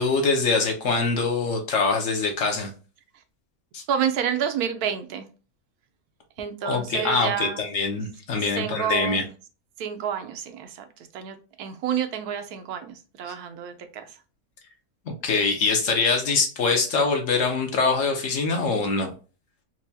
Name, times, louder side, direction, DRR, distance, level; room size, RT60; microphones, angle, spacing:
voice 1, 0.0-2.7 3.7-3.8 6.6-9.2 15.1-19.1, left 4 dB, 60° left, 3 dB, 1.1 m, -24 dB
voice 2, 3.9-5.3 6.4-7.7 8.5-9.2 9.8-14.2, right 8 dB, 85° right, 7 dB, 1.1 m, -29 dB
4.5 x 2.2 x 2.7 m, 0.35 s
omnidirectional pair, 1.6 m